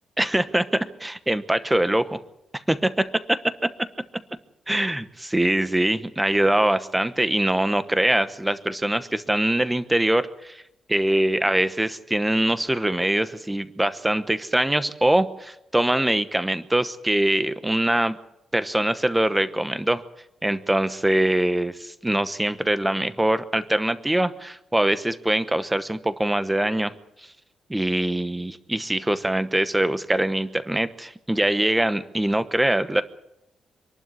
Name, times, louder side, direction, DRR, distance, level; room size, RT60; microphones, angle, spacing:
voice 1, 0.2-2.2 2.5-2.9 4.7-10.6 10.9-18.2 18.5-20.0 20.4-26.9 27.7-33.0, right 1 dB, 5° right, 12 dB, 1.0 m, -23 dB
25.5 x 12.0 x 9.7 m, 0.84 s
wide cardioid pair, 165°, 0 cm